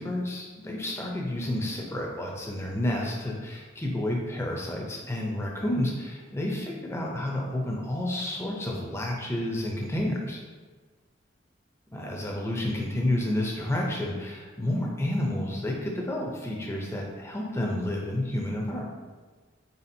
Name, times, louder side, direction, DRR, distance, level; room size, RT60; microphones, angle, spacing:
voice 1, 0.0-10.4 11.9-18.8, left 1 dB, 15° left, -1 dB, 0.5 m, -30 dB
4.2 x 3.7 x 2.7 m, 1.4 s
head